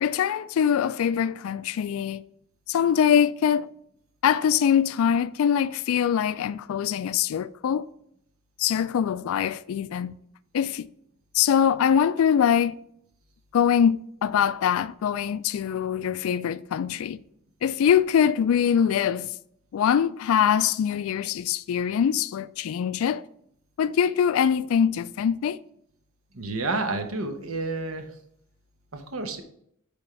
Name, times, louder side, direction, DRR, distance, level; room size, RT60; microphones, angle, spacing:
voice 1, 0.0-2.2 2.7-3.7 4.2-7.8 8.6-10.2 10.5-10.9 11.3-12.7 13.5-17.2 17.6-19.3 19.7-23.2 23.8-25.6, left 8 dB, 80° left, 0.3 m, -23 dB
voice 2, 26.3-28.1 28.9-29.4, right 3 dB, 90° right, 1.0 m, -30 dB
8.7 x 3.5 x 4.4 m
head